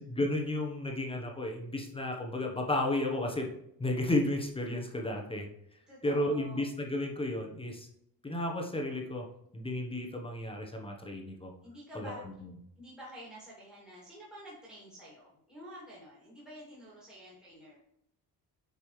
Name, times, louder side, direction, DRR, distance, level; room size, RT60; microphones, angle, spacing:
voice 1, 0.0-3.5 3.8-5.5 6.0-7.9 8.2-9.3 9.5-11.5 11.9-12.1, left 1 dB, 15° left, 0 dB, 1.0 m, -33 dB
voice 2, 5.9-6.6 11.6-12.3 12.8-17.8, equal, ahead, -6 dB, 2.4 m, -49 dB
8.7 x 5.4 x 3.2 m, 0.74 s
cardioid pair, 165°, 38 cm